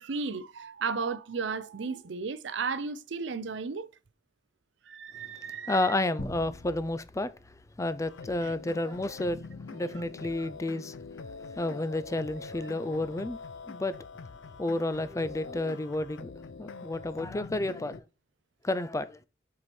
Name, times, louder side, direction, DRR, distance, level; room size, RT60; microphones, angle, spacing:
voice 1, 0.0-3.9 4.9-5.8 8.4-8.5, right 5 dB, 70° right, 0.5 m, -34 dB
voice 2, 5.7-7.3 7.8-11.0 11.4-13.4 13.7-14.0 14.6-16.3 16.6-18.0 18.6-19.3, left 2 dB, 15° left, 0.4 m, -31 dB
sound 1, 6.2-9.0, left 1 dB, 70° left, 1.7 m, -44 dB
sound 2, 8.0-18.0, left 4 dB, 85° left, 0.5 m, -44 dB
6.0 x 4.8 x 4.2 m
head